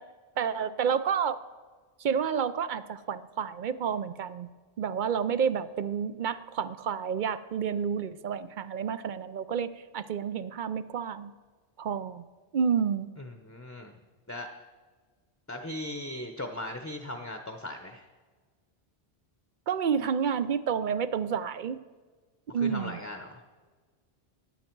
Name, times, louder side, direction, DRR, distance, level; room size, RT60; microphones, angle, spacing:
voice 1, 0.4-1.4 2.0-4.5 4.8-11.3 11.8-12.3 12.5-13.1 19.7-21.8 22.5-23.0, right 7 dB, 55° right, 14 dB, 0.7 m, -30 dB
voice 2, 13.2-13.9 14.3-14.5 15.5-18.1 22.5-23.4, left 1 dB, 15° left, 5 dB, 0.8 m, -38 dB
16.0 x 10.5 x 4.6 m, 1.4 s
omnidirectional pair, 1.0 m